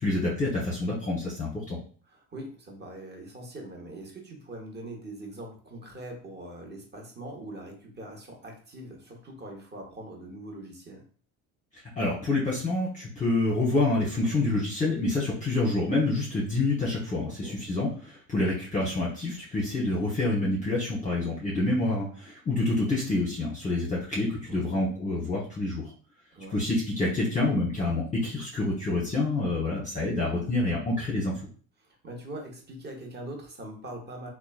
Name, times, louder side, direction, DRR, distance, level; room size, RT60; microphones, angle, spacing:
voice 1, 0.0-1.8 12.0-25.8 26.5-31.3, left 2 dB, 20° left, -4 dB, 0.8 m, -27 dB
voice 2, 2.1-11.0 17.3-17.6 24.5-24.8 26.3-26.6 31.8-34.3, right 1 dB, 25° right, 2 dB, 1.0 m, -42 dB
3.0 x 2.2 x 2.3 m, 0.42 s
supercardioid pair, 80°, 40 cm